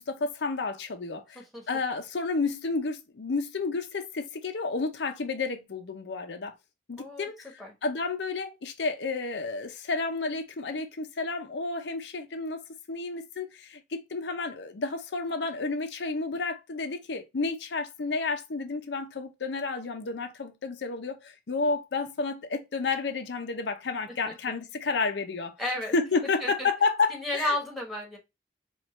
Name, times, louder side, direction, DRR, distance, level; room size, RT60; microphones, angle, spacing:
voice 1, 0.0-6.5 6.9-25.6 25.9-27.6, left 4 dB, 80° left, 0.6 m, -31 dB
voice 2, 7.0-7.3 7.6-7.7 24.3-24.4 25.6-25.9 26.4-26.7 27.1-28.2, left 1 dB, ahead, 1.1 m, -32 dB
4.4 x 2.4 x 3.1 m
head